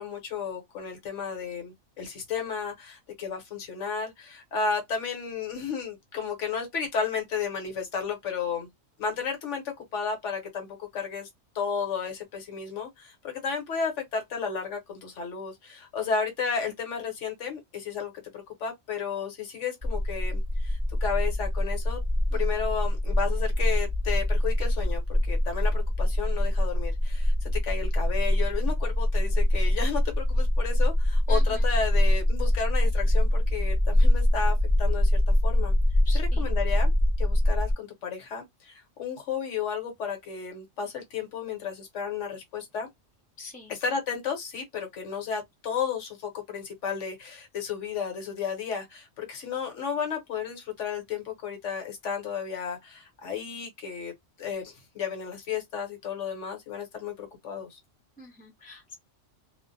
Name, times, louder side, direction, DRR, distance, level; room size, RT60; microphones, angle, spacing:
voice 1, 0.0-8.7 9.0-11.3 11.5-22.0 22.3-35.7 36.1-36.9 37.2-42.9 43.7-54.1 54.4-57.8, left 6 dB, 70° left, 1.2 m, -33 dB
sound 1, 19.8-37.7, left 1 dB, 20° right, 1.2 m, -24 dB
voice 2, 22.3-22.6 31.3-31.6 36.0-36.5 43.4-43.7 58.2-58.9, left 2 dB, 10° left, 0.6 m, -45 dB
2.4 x 2.1 x 2.6 m
omnidirectional pair, 1.3 m